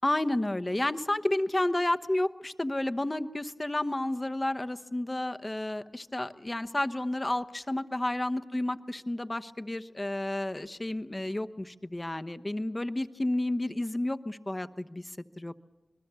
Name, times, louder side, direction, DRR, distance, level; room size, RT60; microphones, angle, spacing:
voice 1, 0.0-15.5, left 1 dB, 25° left, 10 dB, 1.0 m, -31 dB
27.0 x 20.5 x 6.9 m, 1.0 s
cardioid pair, 50°, 0 cm